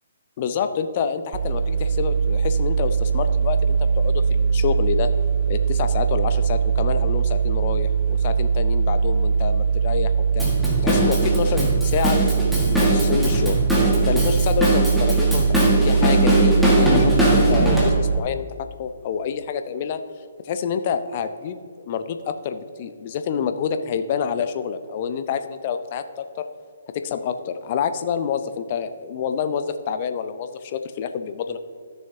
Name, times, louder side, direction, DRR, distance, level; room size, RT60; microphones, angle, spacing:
voice 1, 0.4-5.1 5.5-10.4 10.8-13.6 14.0-17.1 17.3-18.4 18.8-20.0 20.4-26.2 26.9-31.6, left 7 dB, 40° left, 9 dB, 0.6 m, -27 dB
sound 1, 1.3-18.2, right 6 dB, 40° right, 0.5 m, -21 dB
Drum kit / Drum, 10.4-17.9, equal, ahead, 1.7 m, -21 dB
14.0 x 6.5 x 2.8 m, 2.2 s
figure-of-eight pair, 130°, 0 cm